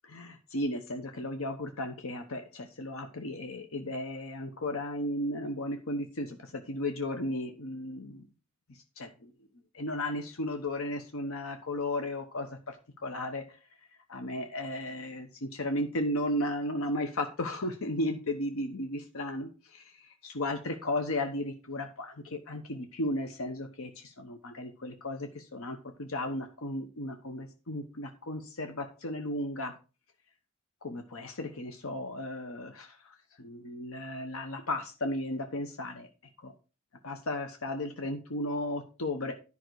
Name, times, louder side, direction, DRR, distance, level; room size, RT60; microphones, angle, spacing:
voice 1, 0.1-8.2 9.0-9.3 9.7-12.8 13.0-13.4 14.1-29.7 30.8-33.0 33.4-36.1 36.4-36.5 37.0-39.3, left 1 dB, 80° left, 5 dB, 1.0 m, -35 dB
10.5 x 5.4 x 4.7 m, 0.33 s
head